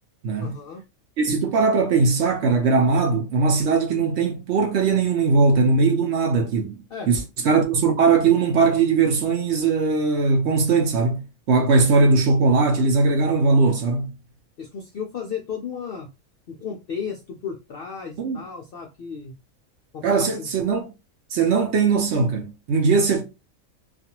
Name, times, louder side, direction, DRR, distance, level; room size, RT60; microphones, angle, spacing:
voice 1, 0.4-0.8 6.9-7.1 14.6-16.1 16.5-19.3 19.9-20.5, left 6 dB, 70° left, 0.5 m, -34 dB
voice 2, 1.2-6.8 7.1-14.1 18.2-18.4 20.0-20.9 21.3-23.2, right 4 dB, 65° right, 0.7 m, -20 dB
2.5 x 2.3 x 2.8 m
omnidirectional pair, 1.4 m